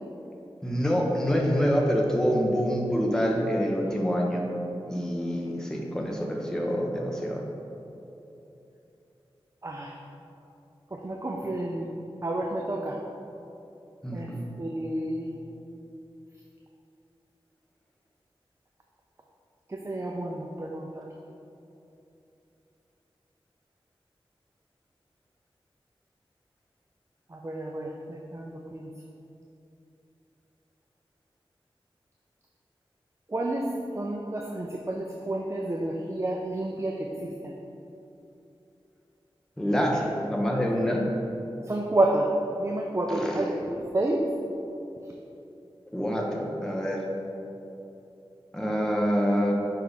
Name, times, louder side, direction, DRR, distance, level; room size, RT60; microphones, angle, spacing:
voice 1, 0.6-4.4 4.9-7.4 14.0-14.5 39.6-41.0 43.1-43.5 45.9-47.0 48.5-49.5, equal, 5° left, -2 dB, 0.9 m, -26 dB
voice 2, 9.6-9.9 10.9-11.9 12.2-13.0 14.1-14.3 14.6-15.4 19.7-21.1 27.3-28.9 33.3-33.7 33.9-37.5 41.6-42.3 42.6-43.5 43.9-44.2, right 1 dB, 30° right, 0 dB, 0.4 m, -30 dB
5.7 x 4.7 x 3.9 m, 2.9 s
wide cardioid pair, 80°, 10 cm